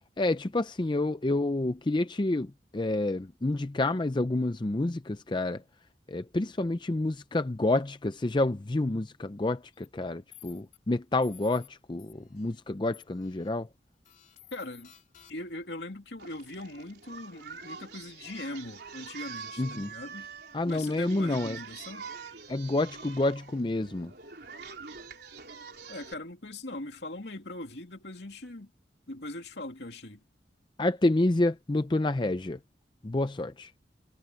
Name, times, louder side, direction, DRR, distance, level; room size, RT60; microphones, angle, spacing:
voice 1, 0.2-5.6 6.1-13.7 19.6-19.9 20.5-21.6 22.5-24.1 30.8-32.6 33.0-33.7, left 2 dB, 25° left, 0.5 m, -28 dB
sound 1, 9.7-9.9 10.3-10.8 11.2-11.7 12.0-12.6 12.9-13.5 14.1-15.6, left 12 dB, 45° left, 3.4 m, -54 dB
voice 2, 14.5-14.9 15.3-20.3 20.6-22.0 25.9-28.7 29.1-30.2, left 2 dB, 70° left, 2.5 m, -40 dB
Singing, 16.2-26.1, right 5 dB, 65° right, 4.1 m, -45 dB
head